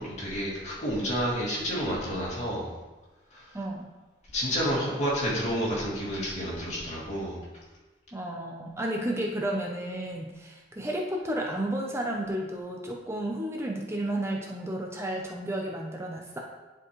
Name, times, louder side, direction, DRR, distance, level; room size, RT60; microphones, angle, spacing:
voice 1, 0.0-2.7 3.3-3.6 4.3-7.4, equal, 40° left, -6 dB, 2.5 m, -30 dB
voice 2, 3.5-3.9 8.1-16.4, right 1 dB, 15° right, 0 dB, 0.7 m, -32 dB
10.5 x 4.5 x 3.2 m, 1.2 s
head